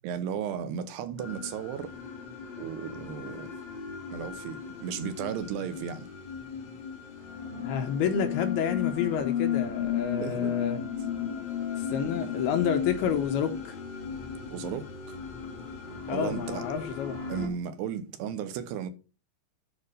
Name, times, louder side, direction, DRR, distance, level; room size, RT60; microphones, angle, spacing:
voice 1, 0.0-1.9 2.6-3.5 4.1-6.1 10.2-10.5 14.5-15.2 16.1-16.7 17.3-18.9, right 8 dB, 90° right, 3.2 m, -35 dB
sound 1, 1.2-17.5, left 8 dB, 50° left, 3.6 m, -35 dB
voice 2, 7.6-10.8 11.7-13.8 16.1-17.2, left 8 dB, 80° left, 2.8 m, -29 dB
11.5 x 4.9 x 5.2 m
omnidirectional pair, 4.6 m